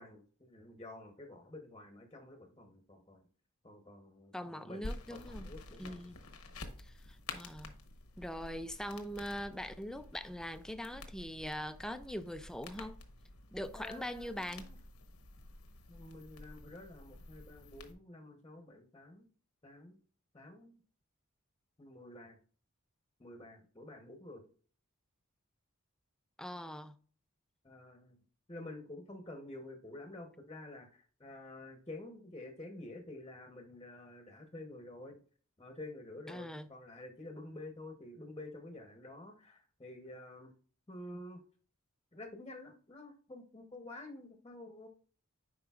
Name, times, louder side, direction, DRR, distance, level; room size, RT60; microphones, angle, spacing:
voice 1, 0.0-3.3 3.6-6.0 13.7-14.8 15.9-19.3 19.6-20.0 20.3-20.8 21.8-22.4 23.2-24.4 27.6-28.2 28.5-35.1 35.6-40.5 40.9-41.4 42.1-44.9, left 2 dB, 20° left, 0.9 m, -49 dB
voice 2, 4.3-5.5 5.8-6.2 6.8-6.9 7.3-7.7 8.2-13.0 13.5-14.7 26.4-26.9 36.3-36.7, equal, 5° left, 0.4 m, -42 dB
sound 1, 4.8-17.9, left 2 dB, 85° left, 1.0 m, -50 dB
9.9 x 4.8 x 2.4 m
head